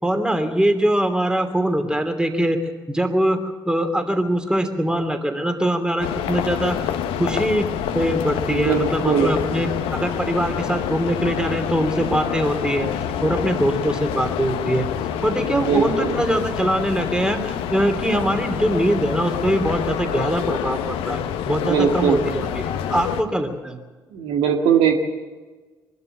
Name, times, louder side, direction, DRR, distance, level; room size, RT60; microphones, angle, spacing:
voice 1, 0.0-2.6 2.9-6.9 7.2-7.7 7.9-12.9 13.2-14.9 15.2-22.5 22.9-23.8, right 1 dB, 10° right, 7 dB, 2.9 m, -22 dB
sound 1, 6.0-23.2, left 9 dB, 70° left, 1.1 m, -27 dB
voice 2, 8.5-9.3 15.5-16.1 21.6-22.2 24.1-25.0, right 7 dB, 65° right, 2 dB, 2.0 m, -20 dB
23.5 x 12.5 x 9.0 m, 1.3 s
figure-of-eight pair, 45°, 10 cm